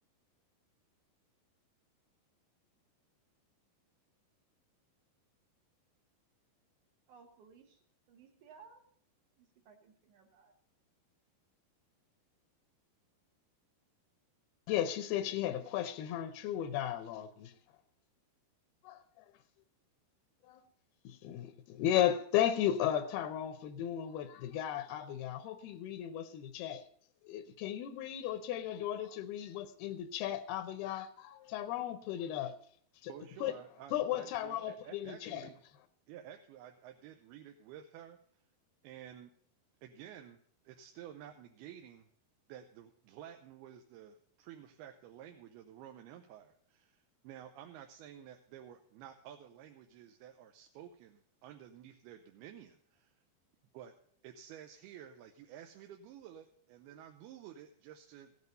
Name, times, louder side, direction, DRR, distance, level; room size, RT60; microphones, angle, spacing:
voice 1, 7.1-7.8 8.1-8.8 9.4-10.5, right 6 dB, 65° right, 2.3 m, -59 dB
voice 2, 14.7-17.5 18.8-19.3 20.4-20.6 21.0-26.8 27.2-32.5 33.0-33.1 33.4-33.5 33.9-35.5, left 11 dB, 80° left, 2.6 m, -35 dB
voice 3, 33.1-35.6 36.1-38.2 38.8-39.3 39.8-40.4 40.6-42.1 42.5-53.2 53.7-53.9 54.2-58.3, right 10 dB, 85° right, 2.7 m, -52 dB
15.5 x 8.4 x 5.3 m
omnidirectional pair, 4.5 m